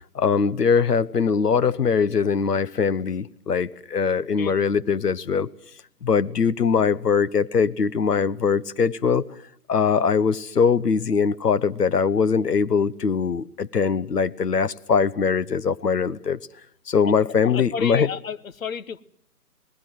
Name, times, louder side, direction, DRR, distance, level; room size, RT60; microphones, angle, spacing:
voice 1, 0.1-5.5 6.0-9.2 9.7-16.4 16.9-18.1, left 6 dB, 80° left, 1.1 m, -22 dB
voice 2, 17.4-19.0, left 6 dB, 60° left, 1.0 m, -31 dB
27.0 x 19.0 x 7.7 m
figure-of-eight pair, 150°, 46 cm